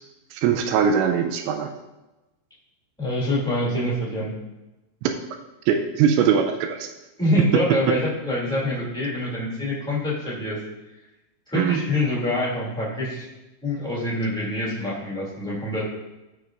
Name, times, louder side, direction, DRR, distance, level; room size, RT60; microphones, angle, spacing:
voice 1, 0.3-1.7 5.0-5.1 5.7-6.9 11.5-11.8, right 7 dB, 85° right, 5 dB, 2.8 m, -21 dB
voice 2, 3.0-4.3 7.2-10.6 11.5-13.2 13.6-15.8, left 1 dB, 5° left, -7 dB, 0.6 m, -25 dB
14.5 x 6.0 x 2.5 m, 1.0 s
omnidirectional pair, 5.2 m